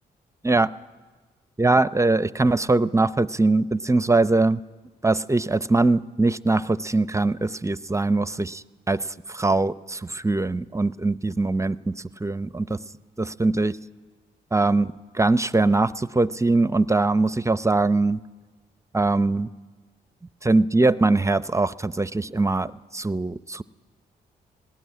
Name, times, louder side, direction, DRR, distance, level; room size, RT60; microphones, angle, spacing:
voice 1, 1.6-4.6 5.0-9.0 9.3-11.9 12.2-12.8 13.2-13.7 14.5-18.2 18.9-19.5 20.4-23.6, right 2 dB, 15° right, 16 dB, 0.6 m, -22 dB
19.0 x 18.0 x 9.5 m, 1.3 s
supercardioid pair, 55°, 19 cm